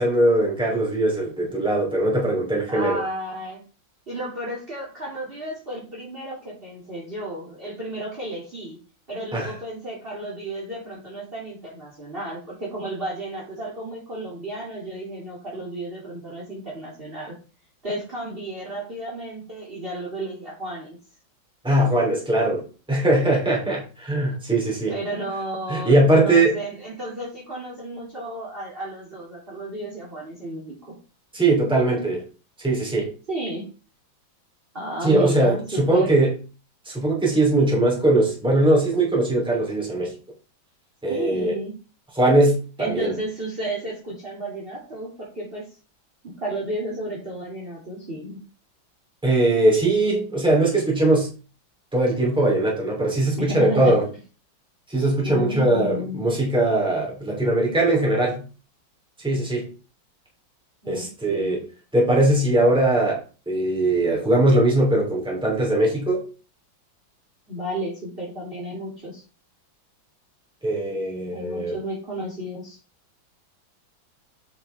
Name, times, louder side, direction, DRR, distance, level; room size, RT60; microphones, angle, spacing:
voice 1, 0.0-3.0 9.3-9.5 21.6-24.9 25.7-26.6 31.3-32.2 32.6-33.1 35.0-36.3 36.8-40.1 41.0-41.5 42.1-43.1 49.2-51.3 51.9-54.0 54.9-58.4 59.2-59.7 60.9-61.6 61.9-63.2 63.5-66.2 70.6-71.8, right 1 dB, ahead, -3 dB, 3.0 m, -20 dB
voice 2, 2.7-3.6 4.1-8.8 9.1-17.3 17.8-21.0 24.9-30.9 33.3-33.7 34.7-36.1 41.1-41.7 42.8-45.7 46.2-48.4 53.4-53.9 55.2-56.2 60.8-61.6 67.5-69.2 71.3-72.8, right 1 dB, 25° right, -4 dB, 2.8 m, -32 dB
8.6 x 5.5 x 3.4 m, 0.35 s
omnidirectional pair, 2.2 m